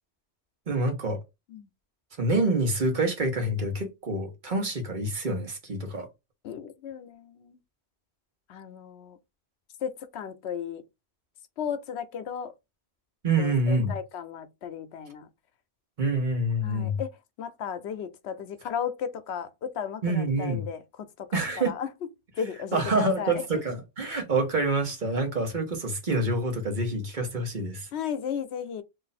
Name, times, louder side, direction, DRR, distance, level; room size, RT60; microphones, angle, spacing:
voice 1, 0.7-1.2 2.2-6.1 13.2-14.0 16.0-17.0 20.0-20.7 21.3-21.7 22.7-27.9, right 2 dB, 45° right, 1.1 m, -27 dB
voice 2, 6.4-7.6 8.5-9.2 9.8-10.8 11.6-12.5 13.4-15.3 16.6-21.4 21.6-21.9 22.4-23.4 27.9-28.8, left 7 dB, 75° left, 0.9 m, -35 dB
2.6 x 2.6 x 4.0 m
omnidirectional pair, 1.1 m